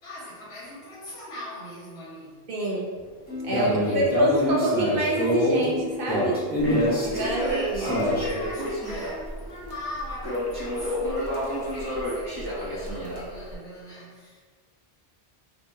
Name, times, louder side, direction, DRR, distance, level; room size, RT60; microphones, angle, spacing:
voice 1, 0.0-2.4 3.6-4.7 7.2-14.4, left 1 dB, 90° left, -10 dB, 1.5 m, -40 dB
voice 2, 2.5-2.9 3.4-6.4 7.0-8.0, right 1 dB, 60° right, -3 dB, 0.9 m, -26 dB
sound 1, 3.3-8.3, left 1 dB, 10° left, 0.8 m, -26 dB
Crackle, 6.6-13.5, equal, 25° right, 0.8 m, -31 dB
4.7 x 2.5 x 2.6 m, 1.5 s
omnidirectional pair, 1.0 m